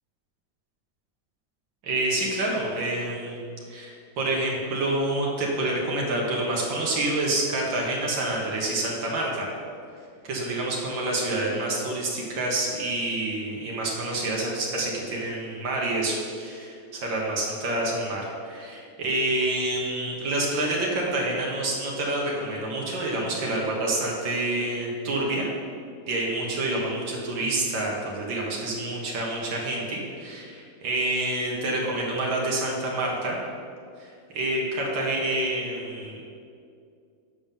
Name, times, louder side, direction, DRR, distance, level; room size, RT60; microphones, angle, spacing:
voice 1, 1.8-3.4 3.7-9.5 10.2-25.5 26.1-33.4 34.0-36.2, right 2 dB, 85° right, -3 dB, 2.0 m, -28 dB
7.0 x 5.4 x 7.3 m, 2.4 s
omnidirectional pair, 2.0 m